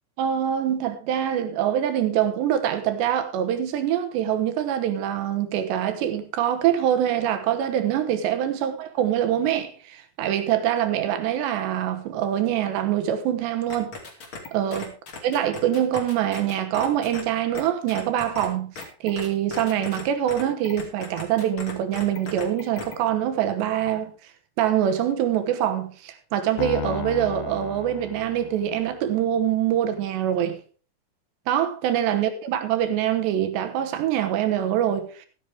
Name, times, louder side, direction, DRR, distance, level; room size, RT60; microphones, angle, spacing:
voice 1, 0.2-13.9 14.5-14.9 15.2-24.1 24.6-30.6 31.5-35.3, right 10 dB, 75° right, 3.4 m, -24 dB
sound 1, 13.7-17.2 17.5-17.6 17.9-18.5 18.8-20.0 20.3-22.9, left 4 dB, 35° left, 2.4 m, -37 dB
Piano, 26.6-29.0, left 9 dB, 85° left, 3.4 m, -34 dB
13.5 x 11.5 x 3.5 m
omnidirectional pair, 5.2 m